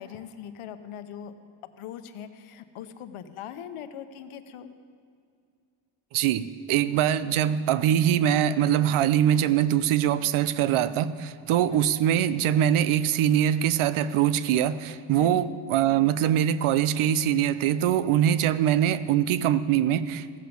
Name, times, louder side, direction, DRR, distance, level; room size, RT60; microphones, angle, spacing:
voice 1, 0.0-1.3 1.8-4.7 11.5-11.9 15.2-15.5, left 9 dB, 85° left, 9 dB, 0.9 m, -41 dB
voice 2, 6.1-20.4, right 10 dB, 80° right, 15 dB, 0.7 m, -23 dB
16.0 x 7.8 x 6.9 m, 2.3 s
cardioid pair, 100°, 49 cm